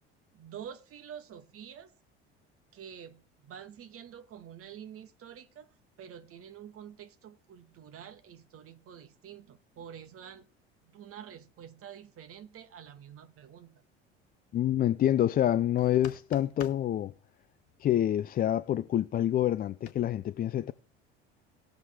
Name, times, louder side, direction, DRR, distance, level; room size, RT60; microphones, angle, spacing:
voice 1, 0.3-1.9 2.7-5.7 6.0-10.5 10.8-13.8, right 9 dB, 45° right, 1.4 m, -48 dB
voice 2, 14.5-17.1 17.8-20.7, left 11 dB, 30° left, 0.4 m, -27 dB
sound 1, 15.8-16.9 19.8-19.9, left 9 dB, 80° left, 1.1 m, -45 dB
18.5 x 6.6 x 3.6 m
figure-of-eight pair, 65°, 32 cm